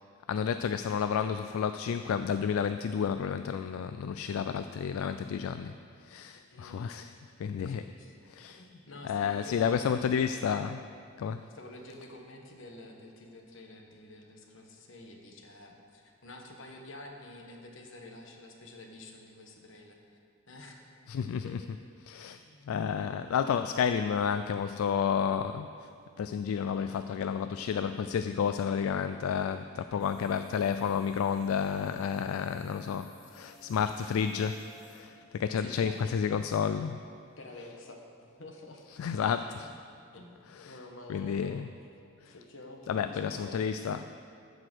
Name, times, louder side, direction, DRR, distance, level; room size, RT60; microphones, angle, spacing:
voice 1, 0.3-5.8 6.0-7.1 7.4-7.9 8.4-8.6 9.0-10.8 11.2-11.5 21.1-21.5 22.0-22.4 22.7-25.9 26.2-37.0 39.0-39.7 40.6-40.7 41.1-41.7 42.3-42.4 42.9-44.0, left 7 dB, 80° left, 10 dB, 0.3 m, -31 dB
voice 2, 6.5-7.2 7.6-8.2 8.5-10.0 11.3-20.0 20.5-20.8 21.4-21.6 22.4-22.8 35.6-36.0 37.4-39.2 39.6-39.7 40.1-41.7 42.2-43.6, left 2 dB, 60° left, 2 dB, 1.2 m, -49 dB
sound 1, 30.0-35.0, right 2 dB, 35° left, 1.7 m, -56 dB
14.5 x 4.9 x 6.2 m, 2.4 s
head